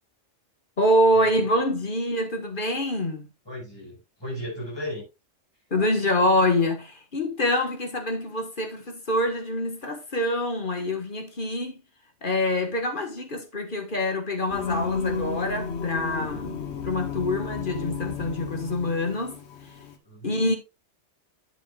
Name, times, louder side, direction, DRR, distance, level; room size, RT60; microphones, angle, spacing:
voice 1, 0.8-3.3 5.7-11.8 12.2-19.4 20.2-20.6, left 1 dB, 45° left, 1.7 m, -25 dB
voice 2, 3.5-5.1 20.0-20.4, left 1 dB, 20° left, 5.4 m, -35 dB
Singing, 14.5-20.0, left 5 dB, 70° left, 1.4 m, -33 dB
9.8 x 8.1 x 2.4 m
omnidirectional pair, 1.2 m